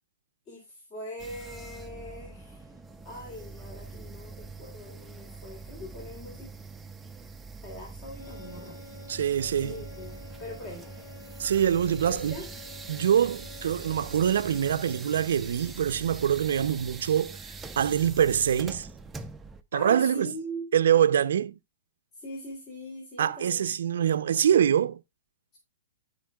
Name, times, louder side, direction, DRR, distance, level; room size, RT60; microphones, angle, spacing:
voice 1, 0.5-2.7 3.0-6.5 7.6-8.8 9.5-10.1 10.4-10.8 12.0-12.5 19.7-21.0 22.2-23.7, equal, 30° left, 3.1 m, -41 dB
sound 1, 1.2-19.6, right 3 dB, 10° right, 0.6 m, -43 dB
sound 2, 8.1-15.3, left 3 dB, 60° left, 4.4 m, -49 dB
voice 2, 9.1-9.7 11.4-12.3 12.9-18.9 19.7-20.3 20.7-21.5 23.2-25.0, right 9 dB, 75° right, 0.6 m, -24 dB
14.5 x 5.4 x 2.3 m
hypercardioid pair, 135°, 0 cm